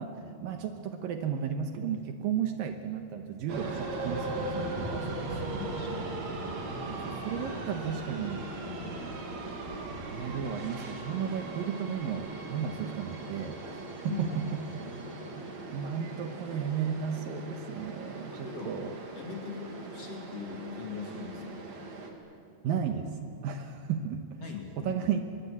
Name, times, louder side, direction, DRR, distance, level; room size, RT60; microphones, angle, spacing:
voice 1, 0.0-5.0 6.9-8.5 10.0-14.6 15.4-18.9 22.6-24.4 24.8-25.2, right 7 dB, 70° right, 6 dB, 2.5 m, -34 dB
sound 1, 3.5-22.1, right 2 dB, 50° right, 3.2 m, -39 dB
voice 2, 5.0-6.1 8.6-9.0 14.0-14.4 14.8-14.9 18.3-18.7 19.1-21.6 24.4-25.0, left 6 dB, 40° left, 1 dB, 3.2 m, -41 dB
24.5 x 22.0 x 8.6 m, 2.6 s
omnidirectional pair, 4.7 m